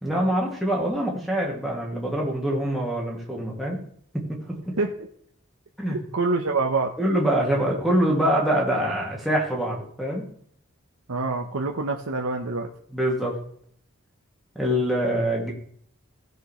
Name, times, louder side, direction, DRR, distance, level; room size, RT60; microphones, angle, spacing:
voice 1, 0.0-3.8 4.1-4.8 5.8-6.0 7.0-10.2 12.9-13.4 14.6-15.5, right 1 dB, ahead, -4 dB, 2.2 m, -24 dB
voice 2, 5.9-6.9 11.1-12.7, right 3 dB, 85° right, 2 dB, 0.9 m, -26 dB
16.5 x 6.7 x 3.1 m, 0.62 s
head